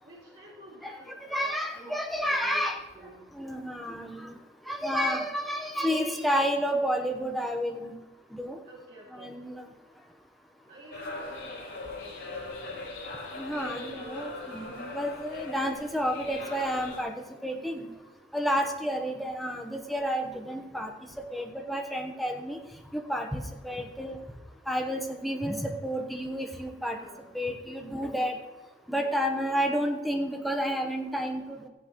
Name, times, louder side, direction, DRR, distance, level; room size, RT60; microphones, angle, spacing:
voice 1, 0.0-2.7 2.9-3.2 8.6-9.3 10.7-12.8 13.7-14.7 18.5-18.7 26.8-27.3 28.9-29.2, right 1 dB, 40° right, -7 dB, 2.3 m, -49 dB
voice 2, 0.8-2.8 3.3-4.4 4.7-7.9 8.3-8.6 9.1-9.6 13.3-17.9 18.3-20.9 21.3-22.6 22.9-24.2 24.7-27.0 27.3-28.4 28.9-31.7, equal, ahead, 2 dB, 1.0 m, -30 dB
sound 1, 10.9-17.0, left 2 dB, 85° left, 3.9 m, -40 dB
14.5 x 10.0 x 3.0 m, 1.2 s
head